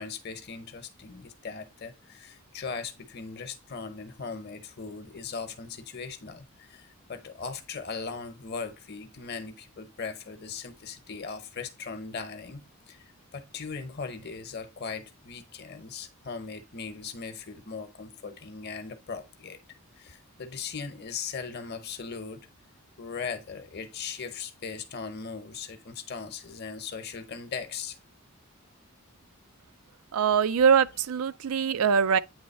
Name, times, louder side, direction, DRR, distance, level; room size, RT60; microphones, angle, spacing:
voice 1, 0.0-19.6 20.0-22.5 23.0-28.0, left 5 dB, 45° left, 0.8 m, -39 dB
voice 2, 30.1-32.2, right 6 dB, 80° right, 0.4 m, -23 dB
8.9 x 3.2 x 4.2 m
head